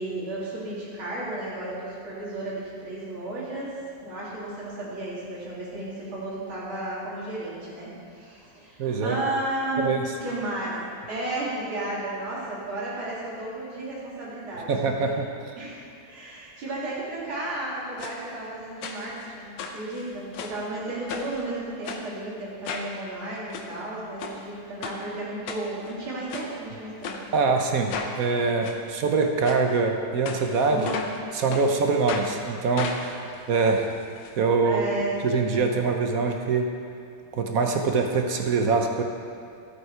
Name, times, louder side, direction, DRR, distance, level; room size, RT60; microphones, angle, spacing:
voice 1, 0.0-3.7 4.0-10.8 11.1-14.7 15.6-27.1 30.7-31.0 34.6-35.1, right 2 dB, 85° right, -7 dB, 3.5 m, -33 dB
voice 2, 8.8-9.2 9.8-10.0 14.7-15.3 27.3-30.9 31.3-33.2 33.5-33.9 34.4-34.8 35.2-36.7 37.3-39.0, right 4 dB, 55° right, 3 dB, 1.1 m, -24 dB
sound 1, 18.0-18.2 18.8-19.3 19.6-20.6 21.1-21.4 21.8-22.0 22.6-22.9 23.4-23.7 24.2-24.4 24.8-25.0 25.5-25.9 26.3-26.5 27.0-27.2 27.9-28.1 28.6-28.8 29.4-29.6 30.3-31.2 31.5-31.7 32.1-32.3 32.8-34.3 34.6-34.7 34.9-35.0, left 5 dB, 75° left, 1.6 m, -35 dB
12.5 x 8.6 x 4.6 m, 2.5 s
omnidirectional pair, 2.2 m